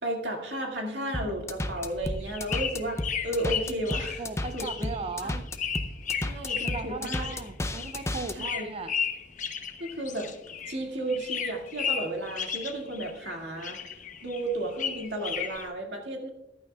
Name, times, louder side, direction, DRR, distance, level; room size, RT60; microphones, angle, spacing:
voice 1, 0.0-4.2 4.5-4.9 5.2-5.3 6.2-7.3 8.3-8.7 9.8-10.3 10.7-13.8 14.2-16.3, right 1 dB, 75° right, 1 dB, 2.2 m, -33 dB
sound 1, 1.1-8.3, left 1 dB, 15° left, 0.6 m, -33 dB
sound 2, 1.8-10.8 11.1-13.3 13.6-15.7, left 7 dB, 45° left, 0.9 m, -34 dB
voice 2, 4.2-5.4 6.7-8.9, right 3 dB, 35° right, 10 dB, 0.5 m, -37 dB
14.5 x 11.0 x 2.4 m, 0.93 s
head